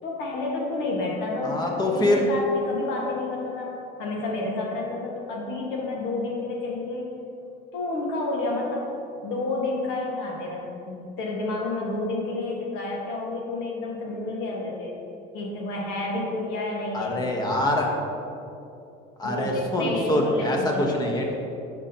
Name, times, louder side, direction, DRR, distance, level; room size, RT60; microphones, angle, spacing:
voice 1, 0.0-3.7 4.0-7.1 7.7-8.9 9.2-14.9 15.3-17.3 19.2-21.0, left 2 dB, 75° left, -2 dB, 1.7 m, -30 dB
voice 2, 1.4-2.2 16.9-17.9 19.2-21.3, left 1 dB, 20° left, 0 dB, 1.2 m, -24 dB
11.0 x 6.2 x 2.9 m, 2.7 s
cardioid pair, 135°, 19 cm